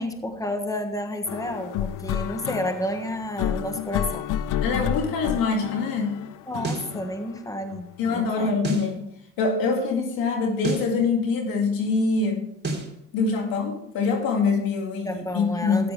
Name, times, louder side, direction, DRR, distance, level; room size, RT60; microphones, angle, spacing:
voice 1, 0.0-4.3 6.5-8.6 15.0-15.9, equal, 10° left, 7 dB, 1.4 m, -31 dB
sound 1, 1.3-8.5, left 10 dB, 65° left, 0.6 m, -31 dB
voice 2, 4.6-6.2 8.0-9.0 9.4-12.5 13.1-15.9, left 4 dB, 85° left, 2 dB, 2.2 m, -24 dB
sound 2, 6.6-6.9 8.6-8.9 10.6-10.9 12.6-12.9, right 2 dB, 30° right, 3.7 m, -29 dB
13.0 x 10.0 x 3.3 m, 0.79 s
supercardioid pair, 55°, 35 cm